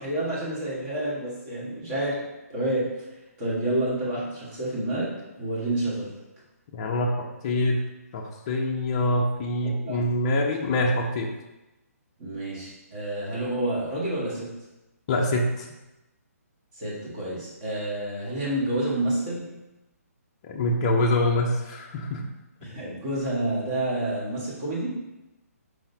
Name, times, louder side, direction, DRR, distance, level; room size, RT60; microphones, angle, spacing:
voice 1, 0.0-2.2 2.5-2.9 3.4-5.1 5.4-6.1 9.6-10.0 12.2-14.5 16.8-19.4 22.6-24.9, right 1 dB, 30° right, -7 dB, 1.6 m, -29 dB
voice 2, 6.7-7.8 8.1-11.3 15.1-15.7 20.4-22.2, left 1 dB, 25° left, 0 dB, 0.4 m, -25 dB
4.8 x 3.8 x 2.8 m, 0.99 s
hypercardioid pair, 165°, 8 cm